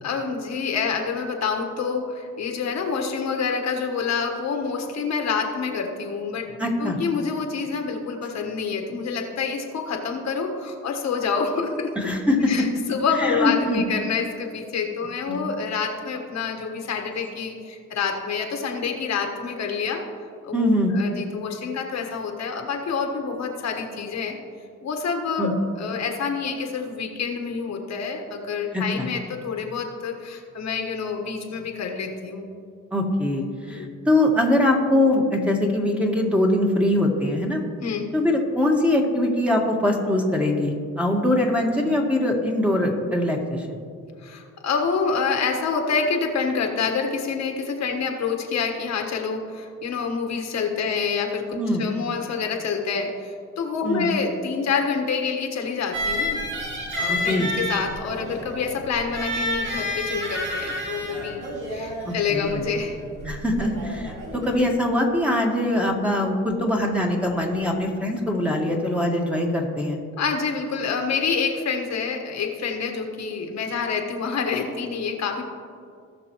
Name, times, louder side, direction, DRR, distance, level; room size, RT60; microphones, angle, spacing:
voice 1, 0.0-11.9 12.5-20.0 20.4-24.4 24.8-32.5 33.7-33.9 37.8-38.1 44.2-56.5 57.0-63.0 70.2-75.4, left 5 dB, 65° left, 3 dB, 1.4 m, -27 dB
voice 2, 6.6-7.0 12.0-12.5 13.2-13.8 15.3-15.4 20.5-20.9 25.4-25.5 28.7-29.1 32.9-37.6 38.1-43.7 51.5-51.8 53.8-54.1 57.1-57.5 62.0-62.6 63.2-70.0, left 1 dB, 5° right, 0 dB, 1.5 m, -22 dB
sound 1, 55.9-64.6, left 1 dB, 75° right, 2.6 m, -30 dB
18.0 x 6.1 x 3.1 m, 2.3 s
cardioid pair, 90°, 30 cm